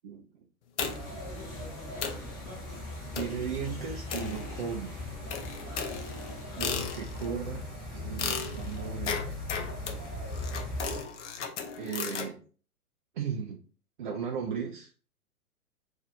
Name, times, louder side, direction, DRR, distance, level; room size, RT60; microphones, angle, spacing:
voice 1, 0.0-0.4 3.2-5.1 6.6-7.6 7.9-9.3 11.8-12.4 13.1-13.6 14.0-14.9, right 6 dB, 35° right, 0 dB, 0.4 m, -36 dB
sound 1, 0.8-1.2 1.7-1.8 2.0-2.3 3.1-3.5 4.1-4.8 5.3-7.3 8.2-12.3, left 6 dB, 50° left, 0.6 m, -36 dB
sound 2, 0.8-11.0, left 1 dB, ahead, 1.5 m, -39 dB
sound 3, 1.0-6.6, left 2 dB, 15° left, 1.1 m, -47 dB
2.6 x 2.4 x 4.0 m, 0.39 s
hypercardioid pair, 125°, 45 cm